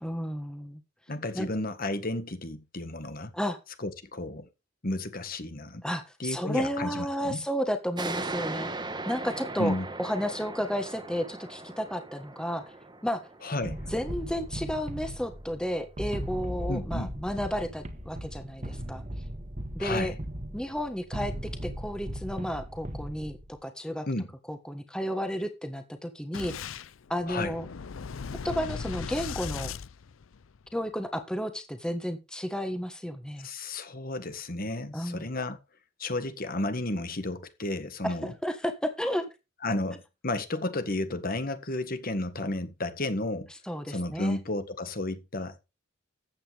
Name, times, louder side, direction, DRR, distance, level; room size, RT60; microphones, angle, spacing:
voice 1, 0.0-0.8 1.3-1.5 3.3-3.6 5.8-8.7 9.0-12.7 13.0-13.2 13.9-19.0 19.7-20.1 20.5-21.3 21.6-24.1 24.5-26.8 27.1-27.6 28.4-29.7 30.7-33.5 34.9-35.3 38.0-39.2 43.6-44.4, equal, 5° left, 1.5 m, -32 dB
voice 2, 1.1-3.3 3.8-4.5 4.8-5.8 6.2-7.4 9.6-9.9 13.4-13.8 16.7-17.1 19.8-20.2 24.1-24.3 27.3-27.5 33.4-35.6 36.0-38.3 39.6-43.5 43.9-45.6, left 2 dB, 45° left, 1.7 m, -32 dB
sound 1, 8.0-15.1, right 2 dB, 20° right, 1.6 m, -39 dB
sound 2, 13.6-23.6, equal, 40° right, 1.7 m, -38 dB
Boom, 26.3-30.7, left 6 dB, 80° left, 0.5 m, -38 dB
14.0 x 8.6 x 3.5 m
head